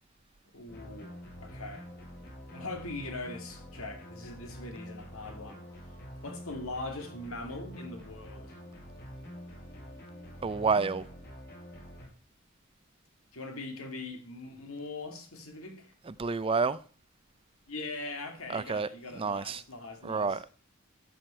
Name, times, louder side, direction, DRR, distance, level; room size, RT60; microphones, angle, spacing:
voice 1, 0.5-1.9 2.5-5.6 6.2-8.5 13.3-15.9 17.7-20.4, left 2 dB, 85° left, 2.4 m, -41 dB
sound 1, 0.7-12.1, equal, 50° left, 4.9 m, -46 dB
voice 2, 10.4-11.0 16.0-16.8 18.5-19.6 20.0-20.5, right 4 dB, 25° right, 0.4 m, -29 dB
12.5 x 7.8 x 4.4 m
head